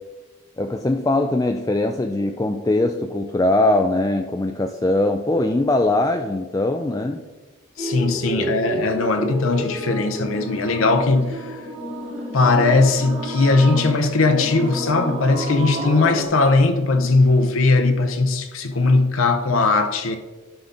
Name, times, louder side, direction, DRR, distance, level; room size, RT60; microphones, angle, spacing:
voice 1, 0.6-7.2 8.3-8.8, left 2 dB, 15° left, 0.3 m, -21 dB
voice 2, 7.8-11.6 12.3-20.2, left 3 dB, 70° left, 0.8 m, -19 dB
sound 1, 7.8-16.3, equal, 25° right, 2.0 m, -30 dB
11.5 x 5.8 x 3.9 m
head